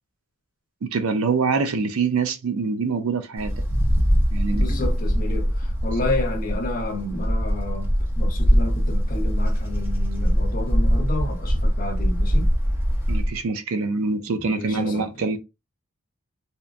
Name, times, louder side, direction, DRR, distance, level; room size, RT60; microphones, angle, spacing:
voice 1, 0.8-3.5 4.3-4.7 13.1-15.4, right 4 dB, 85° right, 0.4 m, -25 dB
Wind, 3.4-13.4, equal, 10° right, 0.6 m, -22 dB
voice 2, 4.5-12.5 14.3-15.3, left 2 dB, 40° left, 0.7 m, -31 dB
2.8 x 2.4 x 2.3 m
head